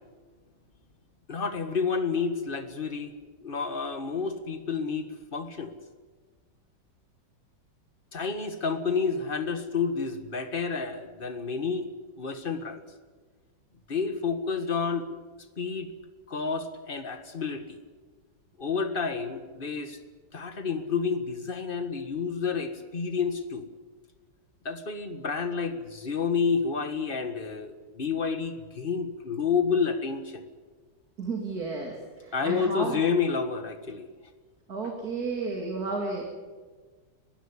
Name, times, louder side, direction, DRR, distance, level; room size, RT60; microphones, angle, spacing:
voice 1, 1.3-3.1 3.4-5.7 8.1-11.9 12.2-12.8 13.9-15.1 15.6-15.9 16.3-17.8 18.6-20.0 20.3-23.7 24.7-30.5 32.3-34.1 34.8-34.9, left 5 dB, 30° left, 9 dB, 1.7 m, -29 dB
voice 2, 31.2-31.9 32.2-33.0 34.7-36.3, right 3 dB, 55° right, 1 dB, 3.1 m, -32 dB
21.5 x 15.5 x 9.9 m, 1.4 s
omnidirectional pair, 2.0 m